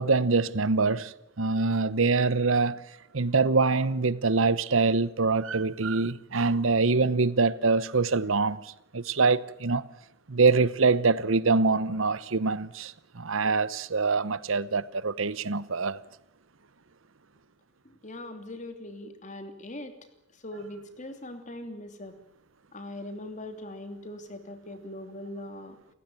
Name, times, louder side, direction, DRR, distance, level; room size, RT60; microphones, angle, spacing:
voice 1, 0.0-2.8 3.1-9.8 10.3-16.0, right 4 dB, 75° right, 0.9 m, -24 dB
voice 2, 18.0-19.9 20.4-22.1 22.7-25.8, left 1 dB, 35° left, 3.0 m, -40 dB
29.5 x 15.5 x 9.1 m
head